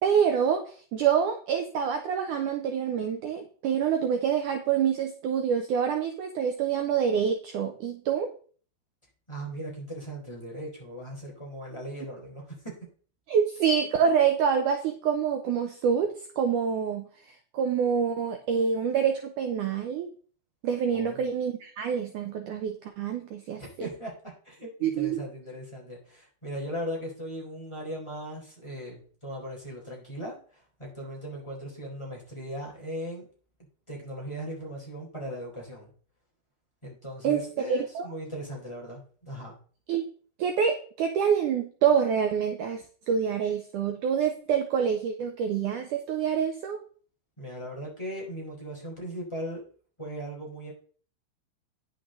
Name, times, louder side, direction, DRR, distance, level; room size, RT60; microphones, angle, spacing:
voice 1, 0.0-8.3 13.3-20.1 20.6-23.6 24.8-25.2 37.2-37.4 37.7-38.1 39.9-40.0 40.4-46.8, right 7 dB, 80° right, 5 dB, 1.8 m, -26 dB
voice 2, 9.3-12.8 20.9-21.3 23.6-33.3 33.9-35.9 36.8-39.5 47.4-49.6 50.0-50.7, equal, 5° left, -2 dB, 3.5 m, -38 dB
10.0 x 8.3 x 3.8 m, 0.43 s
omnidirectional pair, 4.7 m